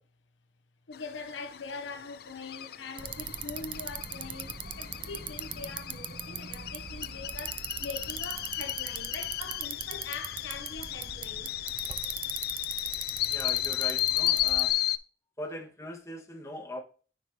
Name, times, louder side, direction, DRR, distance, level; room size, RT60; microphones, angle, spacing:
voice 1, 0.9-11.6, left 4 dB, 80° left, 0.9 m, -42 dB
sound 1, 0.9-15.0, left 14 dB, 50° left, 0.4 m, -34 dB
Bicycle, 3.0-14.7, right 8 dB, 25° right, 0.3 m, -40 dB
voice 2, 13.3-14.8 15.4-16.8, left 1 dB, 15° left, 1.6 m, -40 dB
9.7 x 4.7 x 2.8 m
head